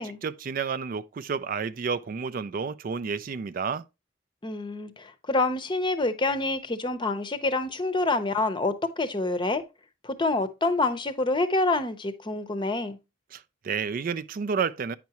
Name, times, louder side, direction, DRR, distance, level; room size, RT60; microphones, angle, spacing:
voice 1, 0.0-3.8 13.3-15.0, right 5 dB, 45° right, 0.4 m, -31 dB
voice 2, 4.4-9.6 10.0-13.0, left 2 dB, 25° left, 0.7 m, -27 dB
9.3 x 5.8 x 2.9 m
head